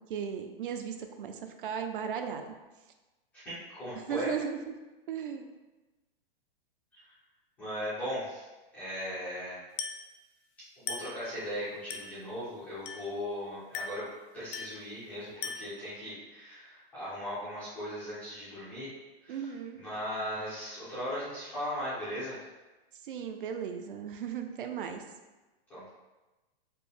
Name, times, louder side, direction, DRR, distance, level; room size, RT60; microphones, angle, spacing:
voice 1, 0.0-2.5 4.1-4.7 5.1-5.5 19.3-19.8 23.0-25.0, right 7 dB, 60° right, 6 dB, 0.5 m, -36 dB
voice 2, 3.3-4.3 6.9-7.0 7.6-8.5 8.7-9.6 10.8-14.0 14.3-18.9 19.2-19.5 19.8-22.4 25.7-25.9, equal, 5° left, -16 dB, 0.4 m, -38 dB
Glass, 9.8-10.1 10.9-11.2 11.9-12.2 12.8-13.2 13.7-14.1 14.5-14.9 15.4-15.8, left 4 dB, 60° left, 0.5 m, -39 dB
4.3 x 2.0 x 3.4 m, 1.1 s
hypercardioid pair, 170°, 30 cm